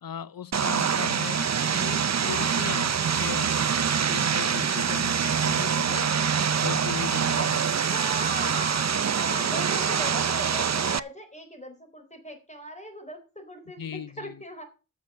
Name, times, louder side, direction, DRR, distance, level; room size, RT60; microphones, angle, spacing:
voice 1, 0.0-1.5 1.8-3.5 4.1-6.2 6.6-7.6 13.8-14.4, left 8 dB, 75° left, 0.5 m, -38 dB
Vehicle, 0.5-11.0, right 7 dB, 50° right, 0.5 m, -25 dB
voice 2, 7.4-14.6, equal, 20° left, 3.7 m, -39 dB
8.2 x 7.0 x 7.8 m
wide cardioid pair, 45°, 35 cm